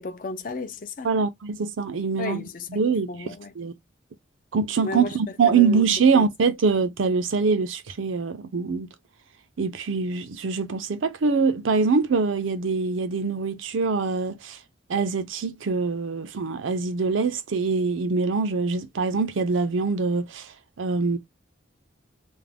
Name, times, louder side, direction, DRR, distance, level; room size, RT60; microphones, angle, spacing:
voice 1, 0.0-1.1 2.2-2.8 3.1-3.5 4.8-5.2 5.4-5.8 6.1-6.3, left 2 dB, 45° left, 0.4 m, -33 dB
voice 2, 1.0-3.7 4.5-8.9 9.6-14.6 14.9-21.2, right 4 dB, 85° right, 0.5 m, -24 dB
2.4 x 2.1 x 3.3 m
head